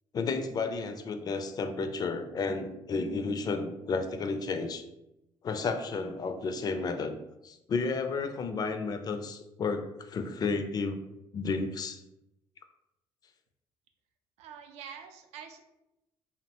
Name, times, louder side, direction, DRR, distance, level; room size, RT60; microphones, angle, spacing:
voice 1, 0.1-4.8 5.4-7.2 7.4-11.0 11.3-12.0, left 4 dB, 35° left, 7 dB, 0.3 m, -32 dB
voice 2, 14.4-15.6, right 8 dB, 75° right, 6 dB, 0.4 m, -46 dB
2.8 x 2.1 x 2.8 m, 0.90 s
supercardioid pair, 75°, 11 cm